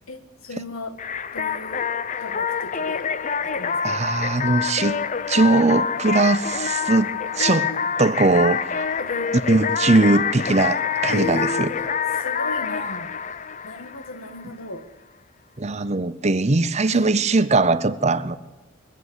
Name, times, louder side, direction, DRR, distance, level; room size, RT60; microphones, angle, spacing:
voice 1, 0.1-1.0 1.3-1.9 2.2-3.1 3.5-4.0 7.4-8.1 9.0-9.4 11.1-11.9 12.2-13.1 13.6-14.9 16.9-17.1, left 2 dB, 90° left, 1.8 m, -35 dB
sound 1, 1.0-14.4, left 6 dB, 35° left, 0.6 m, -26 dB
voice 2, 3.8-5.0 5.3-7.1 7.4-7.7 8.0-8.9 9.3-11.7 15.6-18.4, right 3 dB, 30° right, 0.7 m, -20 dB
22.0 x 15.0 x 8.2 m
head